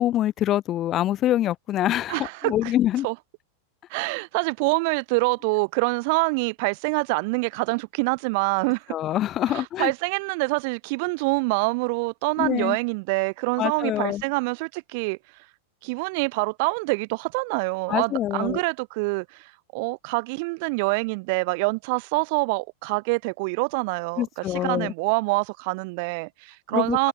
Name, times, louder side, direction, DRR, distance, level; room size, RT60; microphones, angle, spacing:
voice 1, 0.0-3.1 8.9-9.9 12.4-12.8 13.6-14.2 17.9-18.6 24.2-24.9 26.7-27.0, left 13 dB, 30° left, 2.2 m, -25 dB
voice 2, 2.1-2.7 3.0-3.1 3.9-8.8 9.5-15.2 15.8-27.1, right 30 dB, 45° right, 2.4 m, -26 dB
figure-of-eight pair, 90°, 0 cm